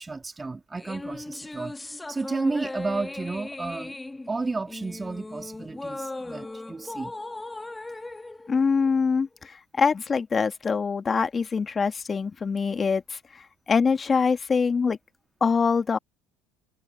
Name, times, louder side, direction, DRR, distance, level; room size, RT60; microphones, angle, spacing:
voice 1, 0.0-1.8 2.1-4.0 4.3-7.1, right 3 dB, 20° right, 2.6 m, -32 dB
sound 1, 0.8-9.4, left 2 dB, 15° left, 2.2 m, -38 dB
voice 2, 8.5-15.0 15.4-16.0, left 5 dB, 30° left, 2.0 m, -24 dB
hypercardioid pair, 75°, 0 cm